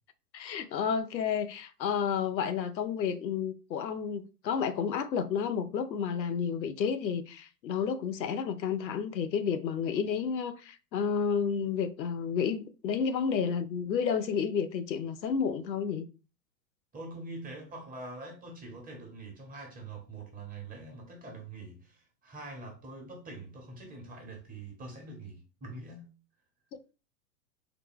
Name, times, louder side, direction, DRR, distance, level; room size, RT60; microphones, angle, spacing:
voice 1, 0.3-16.1, left 7 dB, 90° left, 0.6 m, -31 dB
voice 2, 16.9-26.1, right 2 dB, 15° right, 1.2 m, -44 dB
3.8 x 2.2 x 3.6 m
hypercardioid pair, 110°, 50 cm